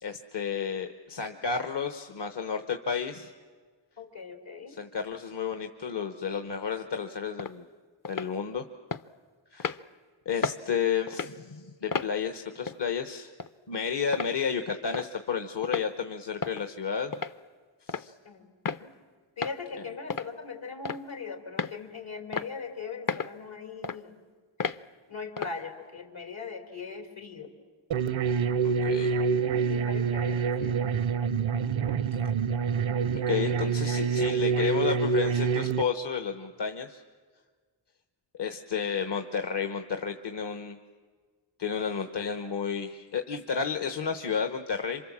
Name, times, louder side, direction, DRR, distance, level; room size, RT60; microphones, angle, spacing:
voice 1, 0.0-3.3 4.8-7.7 8.1-8.6 9.5-9.8 10.2-13.3 13.7-17.1 17.9-18.1 28.6-29.2 33.3-37.0 38.4-40.8 41.6-45.0, left 6 dB, 60° left, 7 dB, 1.2 m, -32 dB
voice 2, 4.0-4.8 18.2-18.5 18.8-18.9 19.4-24.2 24.6-24.7 25.1-27.5 29.3-30.8, left 5 dB, 80° left, 4 dB, 3.5 m, -40 dB
sound 1, 7.4-7.5 8.0-8.3 8.9-9.0 9.6-9.8 10.4-10.6 11.1-11.3 11.9-12.1 12.7-12.8 13.4-13.5 14.1-14.3 14.9-15.1 15.6-15.9 16.4-16.6 17.1-17.4 17.9-18.1 18.7-18.8 19.4-19.6 20.1-20.3 20.8-21.1 21.6-21.8 22.3-22.5 23.1-23.3 23.8-24.0 24.6-24.8 25.4-25.6, left 5 dB, 45° left, 0.7 m, -32 dB
sound 2, 27.9-35.8, right 6 dB, 75° right, 0.7 m, -26 dB
28.0 x 25.5 x 7.4 m, 1.5 s
wide cardioid pair, 55°, 47 cm